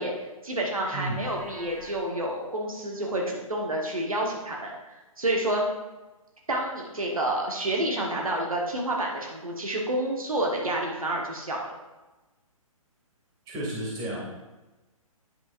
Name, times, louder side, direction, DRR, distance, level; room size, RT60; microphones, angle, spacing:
voice 1, 0.0-5.6 6.5-11.7, right 1 dB, 70° right, -1 dB, 1.3 m, -29 dB
voice 2, 0.9-1.2 13.5-14.3, right 1 dB, 20° right, -4 dB, 2.3 m, -32 dB
Livestock farm animals working animals, 1.1-2.0, equal, ahead, 2.0 m, -46 dB
9.8 x 5.6 x 2.6 m, 1.1 s
figure-of-eight pair, 130°, 18 cm